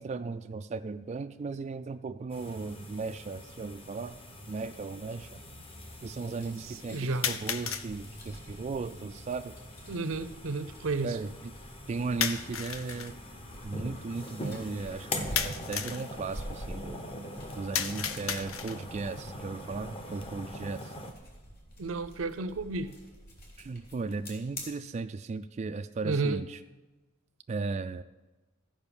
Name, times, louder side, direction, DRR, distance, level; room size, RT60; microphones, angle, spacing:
voice 1, 0.0-4.2 4.5-5.4 6.0-9.5 11.0-11.5 11.9-13.2 13.6-15.1 15.4-17.0 17.6-20.9 23.6-26.6 27.5-28.0, right 4 dB, 35° right, 8 dB, 0.3 m, -36 dB
sound 1, 2.3-21.1, left 1 dB, 30° left, 1.0 m, -43 dB
sound 2, 2.9-3.0 3.9-4.0 7.2-7.9 12.2-13.1 15.4-16.1 17.7-18.9, left 7 dB, 85° left, 0.7 m, -33 dB
sound 3, 6.3-24.6, equal, 50° left, 3.0 m, -49 dB
voice 2, 6.6-7.3 9.9-11.2 21.8-22.9 26.0-26.4, right 3 dB, 80° right, 12 dB, 0.7 m, -32 dB
14.0 x 5.3 x 7.0 m, 1.2 s
head